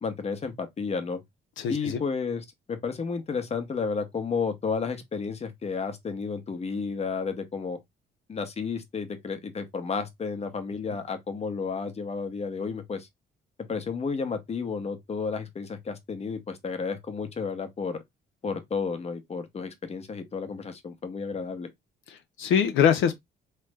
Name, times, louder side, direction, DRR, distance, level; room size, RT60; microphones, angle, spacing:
voice 1, 0.0-1.2 1.7-7.8 8.3-13.1 13.6-18.0 18.4-21.7, left 5 dB, 30° left, 0.8 m, -32 dB
voice 2, 1.6-2.0 22.1-23.2, left 8 dB, 80° left, 0.5 m, -23 dB
3.2 x 2.0 x 3.2 m
cardioid pair, 90°, 20 cm